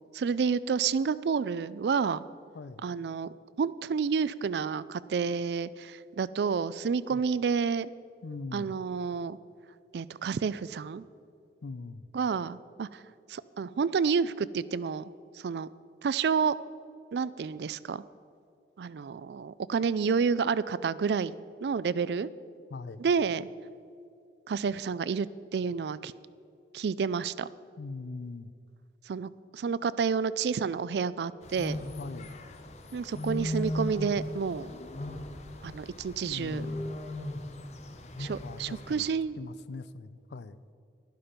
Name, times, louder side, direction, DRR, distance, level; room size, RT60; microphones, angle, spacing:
voice 1, 0.1-2.2 2.8-7.9 8.5-9.4 9.9-11.0 12.1-13.0 13.3-15.0 15.4-15.7 16.0-16.5 17.1-18.0 18.8-21.3 21.6-22.3 23.0-23.5 24.5-25.3 25.5-26.1 26.7-27.5 29.1-31.8 32.9-34.7 35.6-36.7 38.2-39.4, right 5 dB, 70° right, 18 dB, 0.4 m, -29 dB
voice 2, 2.5-2.9 7.1-7.2 8.2-8.8 11.6-12.1 22.7-23.0 27.8-28.5 32.0-32.4 36.2-37.0 38.4-39.1 39.4-40.6, left 3 dB, 75° left, 15 dB, 0.5 m, -41 dB
sound 1, 31.4-39.1, left 1 dB, 40° left, 0.8 m, -37 dB
12.0 x 11.5 x 5.2 m, 2.4 s
head